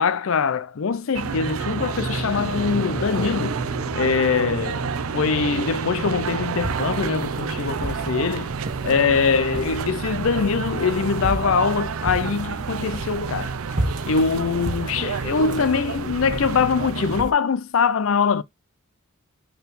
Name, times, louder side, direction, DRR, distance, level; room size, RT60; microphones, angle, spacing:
voice 1, 0.0-3.6 3.9-4.8 5.1-8.5 8.8-13.6 14.1-18.4, left 5 dB, 70° left, 0.5 m, -23 dB
sound 1, 1.1-17.2, right 5 dB, 85° right, 0.5 m, -29 dB
sound 2, 1.6-9.8, left 1 dB, 10° left, 0.4 m, -37 dB
sound 3, 6.6-17.3, right 1 dB, 40° right, 1.5 m, -34 dB
4.5 x 4.0 x 5.2 m
head